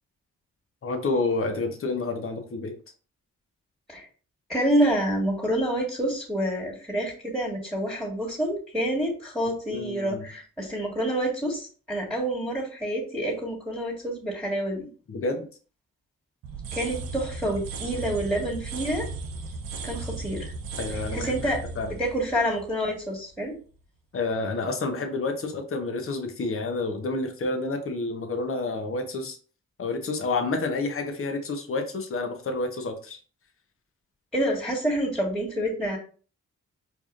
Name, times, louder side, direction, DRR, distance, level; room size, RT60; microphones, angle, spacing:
voice 1, 0.8-2.7 9.7-10.3 15.1-15.5 20.8-21.9 24.1-29.4 29.8-33.2, left 3 dB, 40° left, 4 dB, 0.9 m, -29 dB
voice 2, 4.5-14.9 16.7-19.1 19.8-20.5 21.1-21.6 22.0-23.5 34.3-36.0, right 1 dB, ahead, -7 dB, 1.7 m, -27 dB
sound 1, 16.4-23.3, right 4 dB, 80° right, 0.6 m, -36 dB
4.7 x 2.6 x 2.5 m, 0.39 s
supercardioid pair, 45°, 34 cm